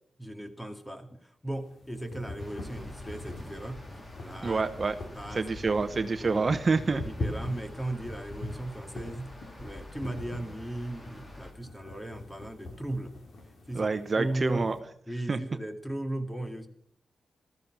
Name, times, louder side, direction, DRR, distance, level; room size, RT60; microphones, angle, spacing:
voice 1, 0.2-3.8 4.2-4.7 5.1-5.6 6.2-6.5 6.9-13.1 13.7-14.7 15.1-16.7, right 1 dB, 10° left, 6 dB, 2.3 m, -37 dB
sound 1, 1.5-14.8, left 2 dB, 65° left, 3.5 m, -43 dB
sound 2, 2.4-11.5, left 1 dB, 30° left, 3.3 m, -47 dB
voice 2, 4.4-4.9 5.3-7.0 13.7-14.7 15.3-15.4, right 4 dB, 40° right, 9 dB, 0.9 m, -27 dB
14.5 x 14.0 x 6.1 m, 0.65 s
cardioid pair, 90°, 0 cm